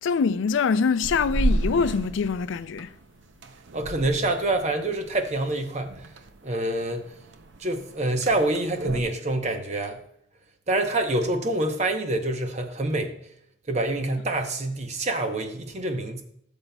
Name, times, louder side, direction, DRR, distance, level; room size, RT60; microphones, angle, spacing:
voice 1, 0.0-2.9, left 5 dB, 70° left, 0.3 m, -24 dB
sound 1, 1.0-9.0, right 1 dB, 65° right, 0.6 m, -33 dB
voice 2, 3.7-6.1 6.4-7.1 7.6-10.0 10.7-13.2 13.7-16.2, right 2 dB, 35° right, 0.8 m, -26 dB
13.0 x 6.9 x 2.2 m
head